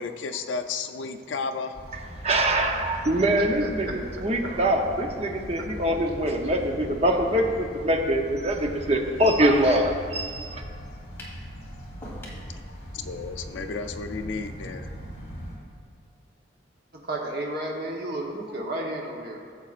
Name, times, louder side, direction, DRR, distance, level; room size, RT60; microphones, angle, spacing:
voice 1, 0.0-1.7 12.5-12.6 12.9-14.9, left 4 dB, 80° left, 7 dB, 0.5 m, -33 dB
sound 1, 1.7-15.6, equal, 40° left, 2.3 m, -40 dB
voice 2, 2.2-10.6, right 1 dB, 35° right, 2 dB, 0.7 m, -24 dB
voice 3, 3.6-3.9 4.4-4.6 7.3-7.5 17.1-19.5, right 1 dB, 55° right, -1 dB, 1.0 m, -33 dB
sound 2, 11.2-11.4 12.0-12.5, equal, 10° left, 1.7 m, -41 dB
14.5 x 7.3 x 2.5 m, 2.1 s
head